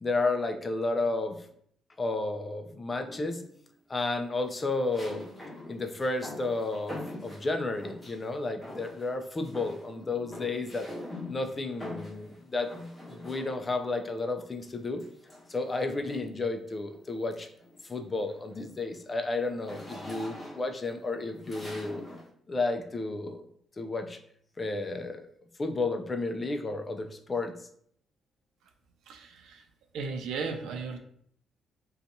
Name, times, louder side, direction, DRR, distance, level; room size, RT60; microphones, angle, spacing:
voice 1, 0.0-1.4 2.0-3.4 3.9-5.2 5.7-10.9 11.3-12.7 13.1-15.0 15.5-17.5 17.9-22.0 22.5-23.4 23.8-24.2 24.6-25.2 25.6-27.5, left 3 dB, 30° left, 6 dB, 0.4 m, -32 dB
sound 1, 3.1-3.6 4.9-8.3 8.6-9.2 9.4-13.9 15.0-16.4 16.9-17.2 17.5-22.3, left 1 dB, 10° left, 1.1 m, -44 dB
voice 2, 29.1-29.7 29.9-31.0, right 4 dB, 85° right, 5 dB, 0.4 m, -35 dB
2.6 x 2.3 x 2.6 m, 0.65 s
cardioid pair, 90°, 0 cm